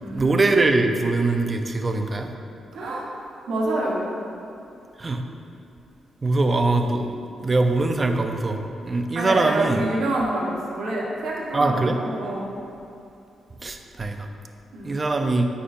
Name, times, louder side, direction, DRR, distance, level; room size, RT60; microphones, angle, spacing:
voice 1, 0.1-2.3 5.0-5.2 6.2-7.1 7.4-9.8 11.5-12.0 13.6-14.3 14.8-15.5, right 2 dB, 30° right, 5 dB, 0.5 m, -22 dB
voice 2, 2.7-3.1 3.5-4.1 9.1-12.5 14.7-14.9, right 2 dB, 75° right, -3 dB, 1.2 m, -27 dB
8.4 x 5.2 x 2.6 m, 2.7 s
cardioid pair, 75°, 0 cm